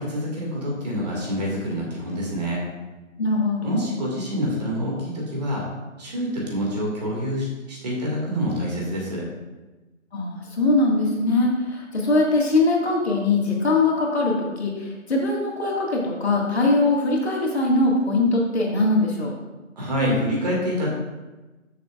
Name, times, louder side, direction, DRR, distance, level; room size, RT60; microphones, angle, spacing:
voice 1, 0.0-2.6 3.6-5.6 6.0-9.3 19.8-20.9, equal, 30° right, -3 dB, 2.2 m, -26 dB
voice 2, 3.2-3.7 10.1-19.3, left 2 dB, 50° left, -2 dB, 2.1 m, -21 dB
12.5 x 7.1 x 2.5 m, 1.1 s
figure-of-eight pair, 155°, 39 cm